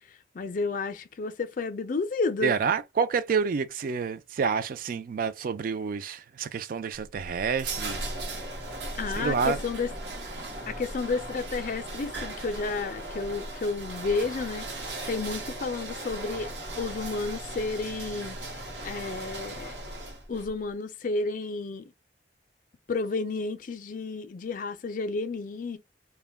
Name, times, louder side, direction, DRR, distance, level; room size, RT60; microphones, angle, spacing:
voice 1, 0.3-2.5 9.0-9.9 10.7-16.5 16.8-18.4 18.8-19.8 20.3-21.9 22.9-25.8, left 3 dB, 50° left, 0.4 m, -31 dB
voice 2, 2.4-8.0 9.2-9.6, right 6 dB, 50° right, 0.3 m, -28 dB
sound 1, 7.4-20.5, right 1 dB, 70° right, 0.8 m, -37 dB
2.2 x 2.1 x 3.3 m
head